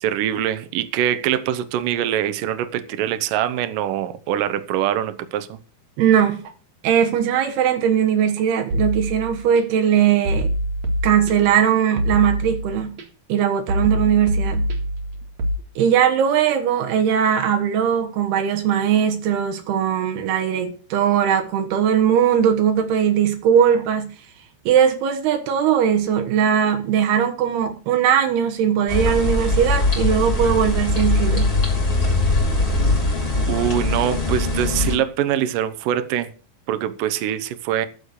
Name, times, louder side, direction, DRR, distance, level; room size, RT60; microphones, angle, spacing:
voice 1, 0.0-5.6 33.5-36.3 36.7-37.9, right 11 dB, 70° right, 2.3 m, -23 dB
voice 2, 6.0-6.5 6.8-10.5 11.0-13.0 13.3-14.7 15.8-24.2 24.7-31.5, right 8 dB, 85° right, 3.4 m, -19 dB
sound 1, 8.7-9.6 10.3-11.6 12.0-13.0 13.7-15.6, equal, 50° right, 2.7 m, -24 dB
sound 2, 28.9-35.0, left 2 dB, 20° left, 2.9 m, -21 dB
11.5 x 7.2 x 6.6 m
omnidirectional pair, 4.4 m